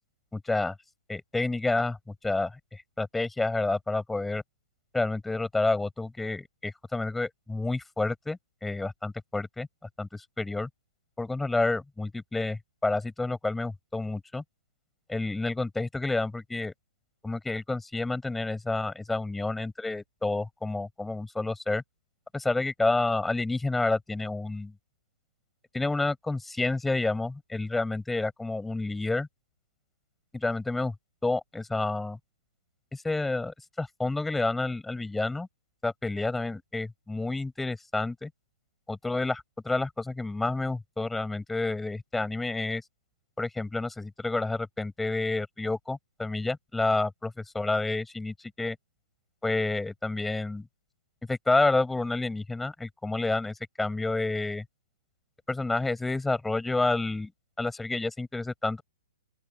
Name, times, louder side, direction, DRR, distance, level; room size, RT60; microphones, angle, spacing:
voice 1, 0.3-0.7 1.1-2.0 2.2-4.4 4.9-9.7 10.0-10.7 11.2-14.4 15.1-16.7 17.2-21.8 22.3-24.7 25.7-29.3 30.3-30.9 31.2-32.2 32.9-35.5 35.8-38.3 38.9-42.8 43.4-48.8 49.4-50.7 51.3-54.6 55.5-57.3 57.6-58.8, left 2 dB, 5° left, 7.8 m, -29 dB
open air
hypercardioid pair, 120°, 2 cm